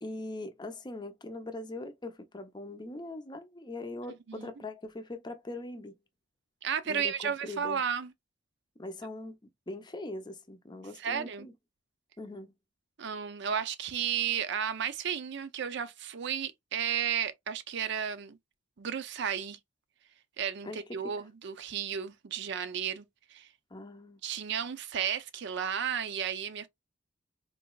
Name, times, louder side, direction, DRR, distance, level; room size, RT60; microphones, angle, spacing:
voice 1, 0.0-6.0 6.9-7.8 8.8-9.4 9.7-11.5 12.2-12.5 20.6-21.1 23.7-24.2, left 2 dB, 25° left, 0.6 m, -41 dB
voice 2, 6.6-8.1 11.0-11.5 13.0-18.4 18.8-19.6 20.4-23.0 23.3-23.5 24.2-26.7, right 8 dB, 65° right, 0.5 m, -33 dB
3.9 x 3.0 x 2.3 m
head